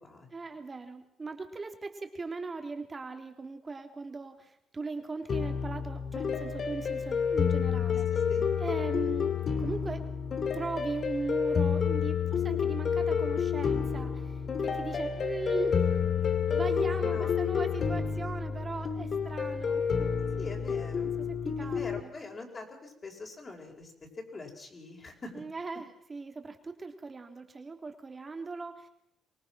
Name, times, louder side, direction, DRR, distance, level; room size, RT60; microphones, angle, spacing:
voice 1, 0.3-8.2 8.6-10.1 10.5-16.0 16.2-20.2 21.2-22.1 25.3-28.9, right 3 dB, 30° right, 6 dB, 2.9 m, -39 dB
sound 1, 5.3-22.0, left 6 dB, 50° left, 2.2 m, -29 dB
voice 2, 8.1-8.5 17.0-17.4 20.4-21.1 21.6-25.3, left 3 dB, 35° left, 1 dB, 5.2 m, -43 dB
24.5 x 19.0 x 6.0 m, 0.77 s
cardioid pair, 90°, 0 cm